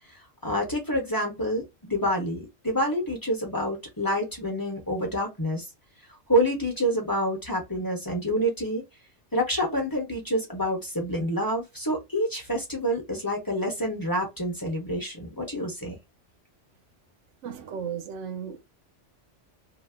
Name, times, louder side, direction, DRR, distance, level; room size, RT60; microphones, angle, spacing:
voice 1, 0.1-5.7 6.3-8.8 9.3-16.0, equal, 20° left, 0.9 m, -27 dB
voice 2, 17.4-18.6, right 7 dB, 80° right, 0.9 m, -35 dB
2.8 x 2.0 x 3.4 m
omnidirectional pair, 1.2 m